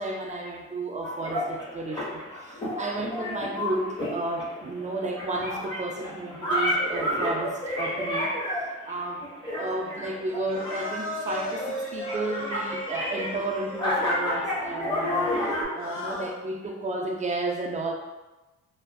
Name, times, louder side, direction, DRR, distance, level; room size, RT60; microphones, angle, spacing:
voice 1, 0.0-8.3 8.9-9.3 9.5-15.3 15.7-17.9, right 2 dB, 25° right, 0 dB, 0.4 m, -32 dB
sound 1, 1.0-15.6, left 1 dB, 15° left, 0.9 m, -30 dB
sound 2, 10.3-14.6 15.7-16.3, equal, 45° left, 0.7 m, -36 dB
2.5 x 2.3 x 2.2 m, 1.1 s
cardioid pair, 90°, 30 cm